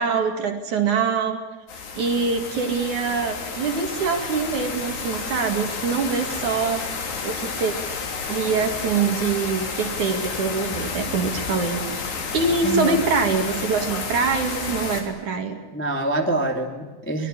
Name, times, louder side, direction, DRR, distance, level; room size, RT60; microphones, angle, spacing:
voice 1, 0.0-1.4 1.9-6.9 7.2-7.7 8.3-11.9 12.3-15.6, right 5 dB, 50° right, 5 dB, 3.1 m, -24 dB
sound 1, 1.7-15.0, left 5 dB, 65° left, 5.3 m, -31 dB
voice 2, 12.6-13.0 15.7-17.3, right 1 dB, 5° left, 2 dB, 1.3 m, -25 dB
24.0 x 22.5 x 9.9 m, 1.2 s
omnidirectional pair, 5.2 m